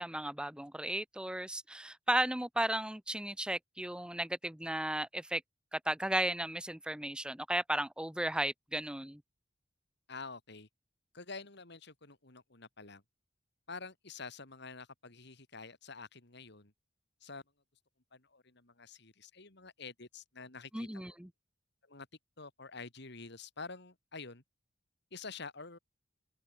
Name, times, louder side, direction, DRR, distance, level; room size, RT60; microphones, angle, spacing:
voice 1, 0.0-5.4 5.7-9.2 20.7-21.3, right 1 dB, 5° right, 0.9 m, -35 dB
voice 2, 10.1-10.7 11.1-13.0 13.7-16.7 17.2-17.4 18.1-21.0 21.8-22.1 22.4-24.4 25.1-25.8, left 4 dB, 65° left, 3.4 m, -48 dB
head